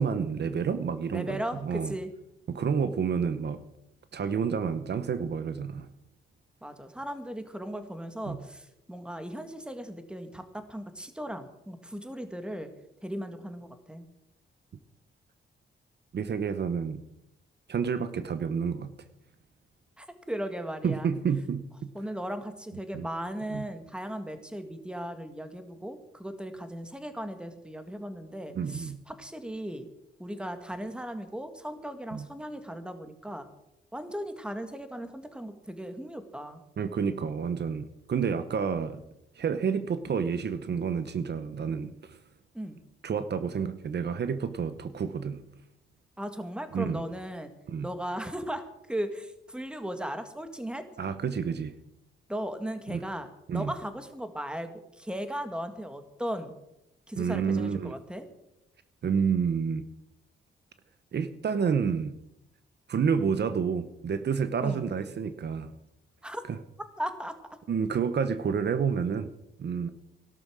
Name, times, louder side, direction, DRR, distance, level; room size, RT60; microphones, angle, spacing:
voice 1, 0.0-1.9 2.5-3.6 4.1-5.9 8.3-8.4 16.1-17.0 17.7-18.9 20.8-21.9 22.9-23.1 23.5-23.6 28.5-29.0 32.1-32.3 36.8-39.0 39.4-42.2 43.0-45.4 46.7-47.0 47.7-47.9 51.0-51.7 52.9-53.0 53.5-53.7 57.2-57.9 59.0-59.8 61.1-62.2 62.9-65.7 66.5-66.6 67.7-69.3 69.6-69.9, right 6 dB, 55° right, 11 dB, 1.0 m, -29 dB
voice 2, 1.1-2.1 6.6-12.7 13.0-14.1 20.0-21.1 21.9-29.9 30.2-33.4 33.9-36.6 42.5-42.8 46.2-47.5 47.8-50.8 52.3-53.3 53.5-54.7 55.0-56.5 57.1-58.2 64.6-64.9 66.2-66.4 67.0-67.3, equal, 5° right, 8 dB, 1.9 m, -37 dB
17.0 x 12.0 x 6.3 m, 0.86 s
wide cardioid pair, 125°, 21 cm